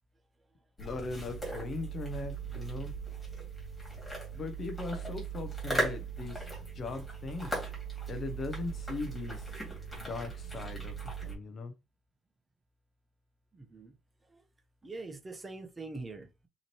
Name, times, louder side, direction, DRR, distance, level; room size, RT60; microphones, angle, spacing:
voice 1, 0.8-2.9 4.3-6.4 6.7-7.5 8.1-9.5 9.9-10.9 11.2-11.7, left 3 dB, 35° left, 0.6 m, -39 dB
sound 1, 0.8-11.3, right 3 dB, 5° left, 2.2 m, -38 dB
voice 2, 13.5-13.9 14.3-14.4 14.8-16.5, right 3 dB, 15° right, 0.9 m, -44 dB
5.6 x 3.0 x 2.9 m
cardioid pair, 170°, 0 cm